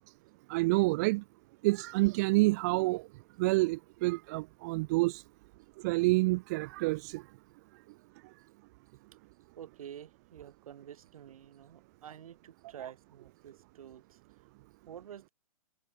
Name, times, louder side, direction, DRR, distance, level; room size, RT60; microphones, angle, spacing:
voice 1, 0.5-1.2 1.6-3.1 3.4-5.2 5.8-7.2, right 23 dB, 25° right, 0.5 m, -28 dB
voice 2, 9.6-14.2 14.9-15.3, right 9 dB, 65° right, 5.2 m, -49 dB
hypercardioid pair, 150°, 20 cm